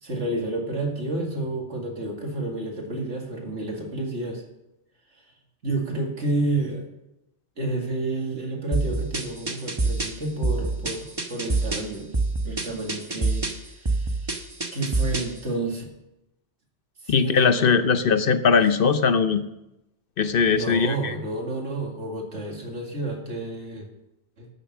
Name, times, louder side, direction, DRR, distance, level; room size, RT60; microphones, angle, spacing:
voice 1, 0.0-4.4 5.6-6.9 7.6-12.1 12.4-14.3 14.7-15.9 17.0-17.8 20.5-23.9 24.4-24.5, right 2 dB, 80° right, 1 dB, 2.5 m, -30 dB
sound 1, 8.7-15.4, right 3 dB, 25° right, 1.0 m, -27 dB
voice 2, 17.1-19.4 20.2-21.2, left 5 dB, 55° left, 11 dB, 0.8 m, -20 dB
12.0 x 6.9 x 7.4 m, 0.91 s
omnidirectional pair, 1.2 m